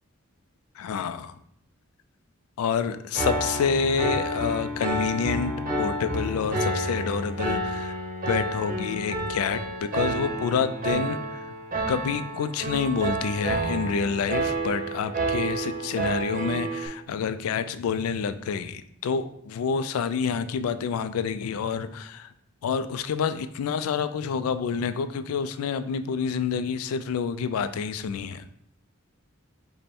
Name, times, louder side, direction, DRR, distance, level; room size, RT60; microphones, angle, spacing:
voice 1, 0.8-1.4 2.6-8.0 8.3-11.5 11.9-22.3 22.6-28.5, left 6 dB, 90° left, 11 dB, 0.3 m, -28 dB
Piano, 3.1-16.9, right 2 dB, 40° right, 0.8 m, -29 dB
5.3 x 2.1 x 4.3 m, 0.71 s
head